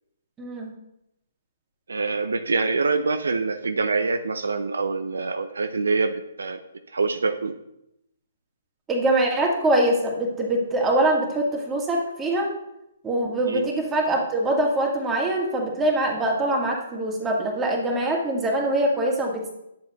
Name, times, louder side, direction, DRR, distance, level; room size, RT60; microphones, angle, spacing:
voice 1, 0.4-0.7 8.9-12.5 13.0-19.5, right 1 dB, 15° right, -1 dB, 1.9 m, -23 dB
voice 2, 1.9-6.6 6.9-7.5 13.5-13.7, right 4 dB, 80° right, 9 dB, 0.5 m, -25 dB
9.2 x 7.3 x 3.0 m, 0.83 s
figure-of-eight pair, 135°, 0 cm